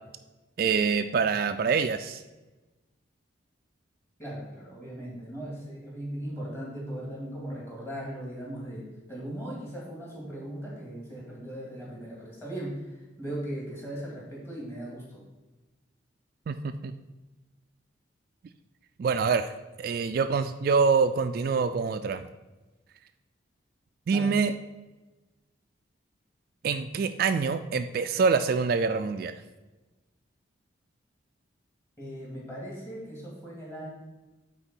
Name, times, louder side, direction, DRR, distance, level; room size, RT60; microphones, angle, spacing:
voice 1, 0.6-2.2 16.5-16.9 19.0-19.5 19.8-22.2 24.1-24.5 26.6-29.4, right 5 dB, 50° right, 9 dB, 0.3 m, -25 dB
voice 2, 4.2-15.2 24.1-24.3 32.0-33.9, right 1 dB, 15° left, -5 dB, 2.5 m, -38 dB
8.9 x 4.0 x 4.5 m, 1.1 s
head